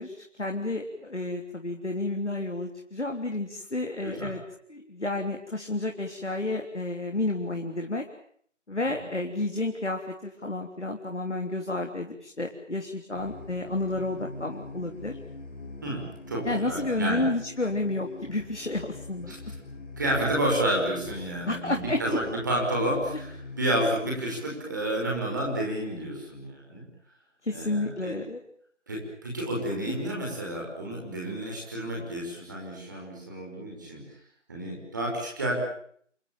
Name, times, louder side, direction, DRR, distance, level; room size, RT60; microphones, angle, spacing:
voice 1, 0.0-4.4 4.7-8.0 8.7-15.2 16.4-19.3 21.5-22.2 27.4-28.4 29.9-30.0, left 2 dB, 70° left, 3 dB, 3.6 m, -31 dB
voice 2, 4.0-4.3 15.8-16.0 16.3-17.3 19.3-19.4 20.0-26.8 27.5-28.1 28.9-34.0 34.5-35.5, right 1 dB, 15° right, -2 dB, 5.6 m, -30 dB
sound 1, 13.1-23.6, left 2 dB, 10° left, 5.5 m, -44 dB
28.0 x 21.0 x 8.9 m, 0.63 s
figure-of-eight pair, 170°, 37 cm